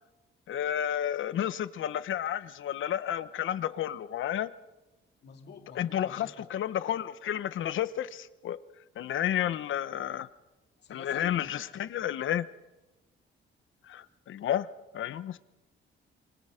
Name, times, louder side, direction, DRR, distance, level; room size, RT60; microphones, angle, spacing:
voice 1, 0.5-4.5 5.7-8.6 9.0-10.3 10.9-12.5 13.9-14.7 14.9-15.4, left 10 dB, 75° left, 1.1 m, -31 dB
voice 2, 5.2-6.5 10.8-11.6, left 6 dB, 60° left, 2.4 m, -48 dB
28.0 x 24.5 x 5.1 m
cardioid pair, 135°, 20 cm